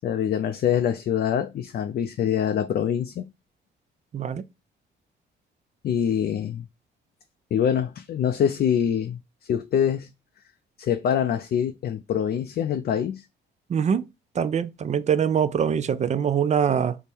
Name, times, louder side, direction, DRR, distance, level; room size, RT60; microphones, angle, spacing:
voice 1, 0.0-3.2 5.8-6.7 7.5-10.1 10.8-13.2, left 9 dB, 50° left, 0.4 m, -25 dB
voice 2, 4.1-4.4 13.7-14.0 14.4-17.0, right 7 dB, 35° right, 0.4 m, -23 dB
3.4 x 2.1 x 4.3 m
cardioid pair, 90°, 20 cm